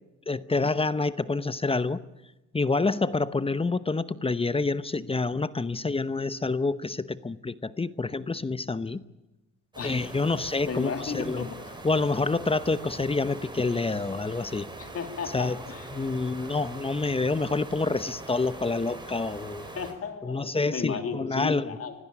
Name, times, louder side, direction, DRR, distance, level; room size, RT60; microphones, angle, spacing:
voice 1, 0.3-2.0 2.5-9.0 9.8-11.5 11.8-14.7 15.3-15.6 15.9-19.6 20.2-21.8, left 3 dB, 20° left, 15 dB, 0.9 m, -27 dB
sound 1, 9.7-19.9, right 2 dB, 15° right, 4.9 m, -42 dB
voice 2, 10.7-11.5 14.8-15.9 19.7-21.9, left 6 dB, 50° left, 6 dB, 3.2 m, -34 dB
25.5 x 16.5 x 8.6 m, 1.0 s
cardioid pair, 90°, 30 cm